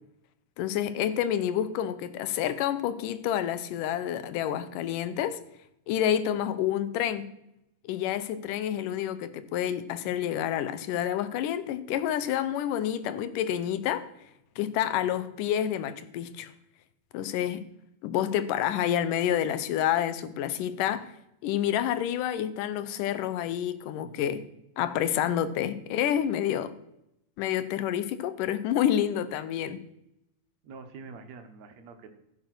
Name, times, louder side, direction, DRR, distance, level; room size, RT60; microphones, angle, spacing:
voice 1, 0.6-5.4 5.9-7.3 7.8-14.1 14.6-16.5 17.1-17.6 18.0-21.1 21.4-24.5 24.8-26.7 27.4-29.8, left 10 dB, 85° left, 2.5 m, -28 dB
voice 2, 23.9-24.5 30.6-32.1, right 4 dB, 65° right, 2.4 m, -46 dB
15.0 x 7.4 x 6.2 m
omnidirectional pair, 3.7 m